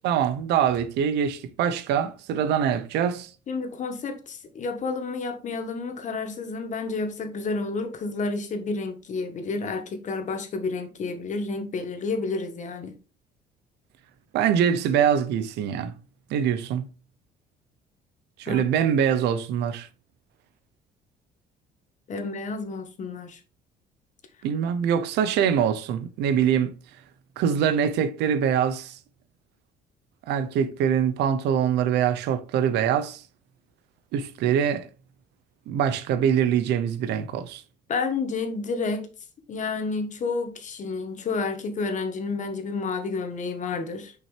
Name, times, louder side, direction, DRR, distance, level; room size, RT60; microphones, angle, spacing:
voice 1, 0.0-3.3 14.3-15.9 16.3-16.9 18.4-19.9 24.4-26.7 27.4-29.0 30.3-33.2 34.1-34.9 35.7-37.6, right 8 dB, 80° right, 0.8 m, -24 dB
voice 2, 3.5-12.9 18.5-18.6 22.1-23.4 37.9-39.1 39.5-44.1, left 4 dB, 45° left, 1.4 m, -30 dB
6.3 x 5.6 x 3.3 m
cardioid pair, 110°, 17 cm